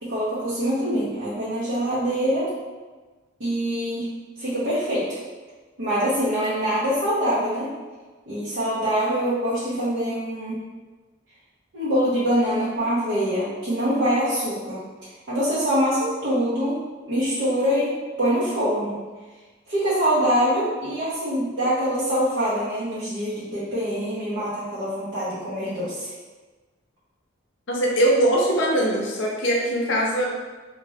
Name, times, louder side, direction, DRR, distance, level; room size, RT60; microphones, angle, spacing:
voice 1, 0.0-2.5 3.4-4.1 4.4-5.1 5.8-7.7 8.3-10.6 11.7-17.9 18.2-19.0 19.7-26.1, equal, 70° right, -11 dB, 0.9 m, -24 dB
voice 2, 27.7-30.2, right 1 dB, 65° left, -2 dB, 0.6 m, -21 dB
3.2 x 2.5 x 2.7 m, 1.3 s
head